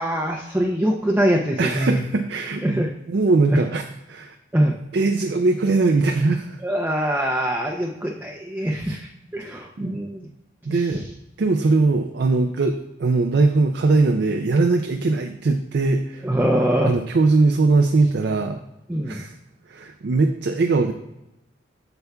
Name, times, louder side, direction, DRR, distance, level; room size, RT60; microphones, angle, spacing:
voice 1, 0.0-2.0 2.6-2.9 3.5-3.6 4.5-4.8 6.6-10.3 10.7-11.0 16.2-16.9 18.9-19.2, equal, 10° right, 0 dB, 0.5 m, -23 dB
voice 2, 1.6-3.8 4.1-4.4 4.9-6.6 8.6-9.0 9.4-10.0 10.7-11.0 11.4-16.3 16.8-18.6 19.1-19.4 19.7-20.9, right 3 dB, 60° right, 5 dB, 0.4 m, -21 dB
8.0 x 6.8 x 2.3 m, 0.89 s
head